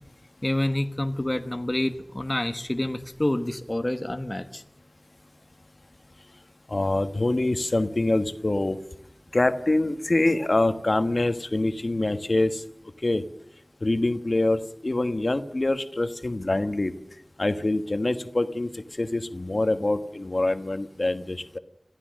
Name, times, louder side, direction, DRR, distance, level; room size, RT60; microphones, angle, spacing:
voice 1, 0.4-4.6, left 1 dB, 35° left, 7 dB, 1.2 m, -28 dB
voice 2, 6.7-8.8 9.3-12.6 13.0-13.2 13.8-16.9 17.4-18.7 19.0-21.6, left 2 dB, 60° left, 9 dB, 1.4 m, -25 dB
27.0 x 15.0 x 6.4 m, 0.78 s
wide cardioid pair, 50°, 0 cm